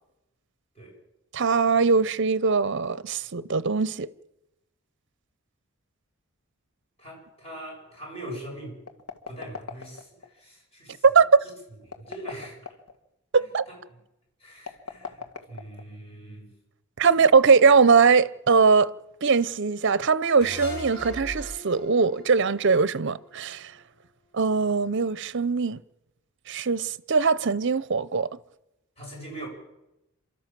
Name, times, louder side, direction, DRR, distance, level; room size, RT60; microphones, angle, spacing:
voice 1, 1.3-4.1 11.0-11.4 13.3-13.6 17.0-18.9 19.2-23.7 24.3-25.8 26.5-28.3, right 5 dB, 55° right, 0.6 m, -21 dB
voice 2, 7.0-8.8 9.3-11.1 11.4-11.5 11.9-12.6 13.7-13.8 14.4-16.5 29.0-29.5, right 1 dB, 25° left, 7.9 m, -42 dB
sound 1, 8.8-10.3 11.8-13.0 14.6-16.1, left 5 dB, 90° left, 1.9 m, -39 dB
sound 2, 20.4-23.7, equal, 50° left, 6.4 m, -40 dB
28.0 x 12.5 x 7.5 m
head